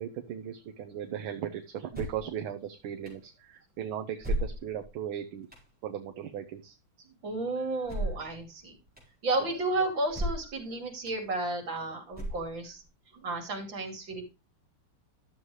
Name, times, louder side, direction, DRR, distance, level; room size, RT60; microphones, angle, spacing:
voice 1, 0.0-5.5 5.8-6.8 7.6-8.1 9.4-9.5, right 9 dB, 75° right, 6 dB, 1.7 m, -38 dB
sound 1, 1.9-2.3 3.1-3.2 4.2-4.9 5.5-5.7 7.8-8.3 9.0-9.1 10.1-10.6 11.1-11.2 12.1-12.7, right 1 dB, 5° right, 4.7 m, -33 dB
voice 2, 7.0-8.8 9.2-12.8 13.1-14.3, right 2 dB, 60° right, 3 dB, 3.2 m, -32 dB
12.5 x 7.2 x 3.2 m, 0.29 s
omnidirectional pair, 2.4 m